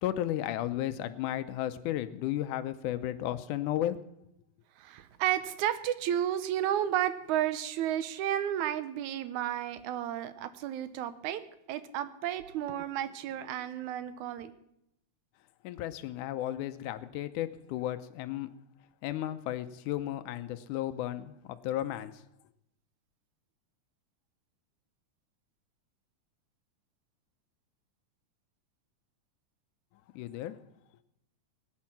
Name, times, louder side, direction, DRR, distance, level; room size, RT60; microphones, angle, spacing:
voice 1, 0.0-4.0 15.6-18.5 19.0-22.2 30.2-30.6, left 13 dB, 85° left, 11 dB, 2.2 m, -34 dB
voice 2, 4.8-11.4 11.7-14.5, right 11 dB, 75° right, 13 dB, 2.1 m, -32 dB
19.0 x 9.8 x 5.9 m, 0.79 s
omnidirectional pair, 3.5 m